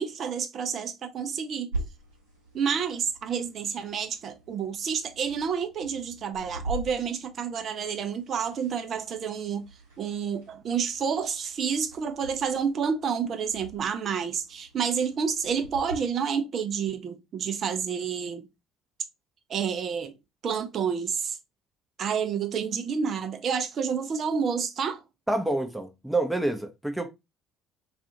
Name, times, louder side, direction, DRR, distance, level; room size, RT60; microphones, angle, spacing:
voice 1, 0.0-1.7 2.5-9.6 10.0-18.4 19.5-20.1 20.4-21.4 22.0-25.0, right 6 dB, 45° right, 0.5 m, -29 dB
sound 1, 1.7-15.9, right 1 dB, 80° right, 1.0 m, -43 dB
voice 2, 25.3-27.1, right 2 dB, 5° right, 0.6 m, -27 dB
2.4 x 2.4 x 2.8 m
figure-of-eight pair, 55°, 0 cm